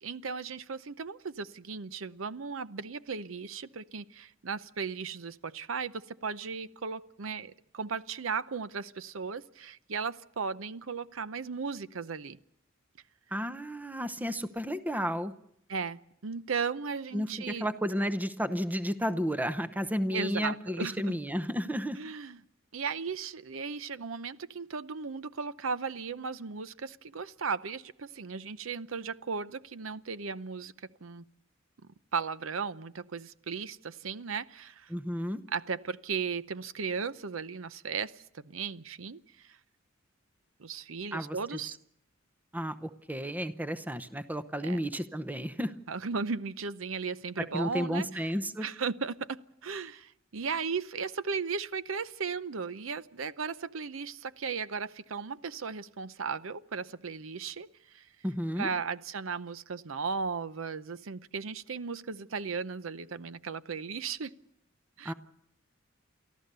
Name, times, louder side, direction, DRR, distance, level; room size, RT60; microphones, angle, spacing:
voice 1, 0.0-12.4 15.7-17.7 20.1-21.2 22.0-22.4 22.7-30.7 31.0-31.2 32.1-34.9 35.5-39.6 40.6-41.8 44.6-44.8 45.9-48.3 48.6-58.1 58.6-64.3 65.0-65.1, right 5 dB, 80° right, 14 dB, 0.7 m, -36 dB
voice 2, 13.3-15.3 17.1-22.0 34.9-35.4 41.1-41.4 42.5-45.7 47.4-48.7 58.2-58.7 65.0-65.1, equal, 10° right, 11 dB, 0.8 m, -32 dB
29.5 x 14.0 x 6.8 m, 0.76 s
head